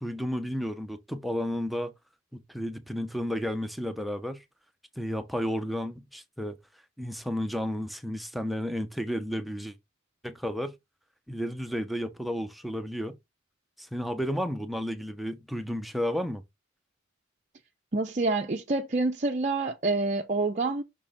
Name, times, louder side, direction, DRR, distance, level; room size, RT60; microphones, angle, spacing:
voice 1, 0.0-1.9 2.3-4.4 5.0-6.6 7.0-9.8 10.2-10.7 11.3-13.2 13.8-16.4, equal, ahead, 0.8 m, -32 dB
voice 2, 17.9-20.8, right 3 dB, 35° right, 0.7 m, -27 dB
6.2 x 4.4 x 3.6 m
head